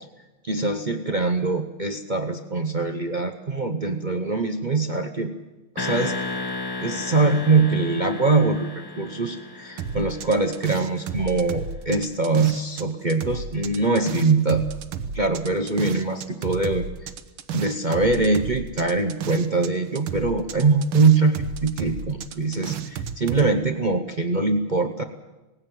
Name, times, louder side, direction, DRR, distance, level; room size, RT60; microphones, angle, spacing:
voice 1, 0.4-5.3 5.7-6.1 6.8-8.7 9.0-14.6 15.1-16.9 17.5-25.0, right 3 dB, 55° right, 6 dB, 0.5 m, -23 dB
sound 1, 5.8-10.7, left 2 dB, 35° left, 0.4 m, -33 dB
sound 2, 9.8-12.8 13.1-19.7 19.9-23.5, right 7 dB, 80° right, 1.8 m, -32 dB
18.5 x 17.0 x 9.1 m, 1.1 s
omnidirectional pair, 2.3 m